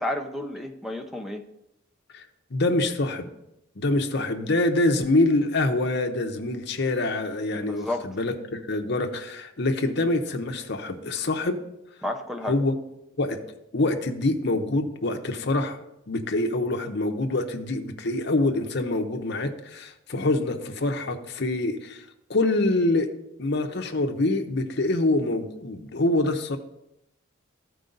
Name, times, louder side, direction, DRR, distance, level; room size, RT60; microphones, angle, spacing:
voice 1, 0.0-1.4 7.5-8.1 12.0-12.6, left 1 dB, ahead, 5 dB, 0.6 m, -31 dB
voice 2, 2.5-3.3 3.8-11.6 12.5-12.8 13.2-13.4 13.7-15.8 16.1-22.0 22.3-23.1 23.4-26.6, left 2 dB, 55° left, 5 dB, 0.8 m, -25 dB
13.5 x 4.7 x 3.9 m, 0.84 s
head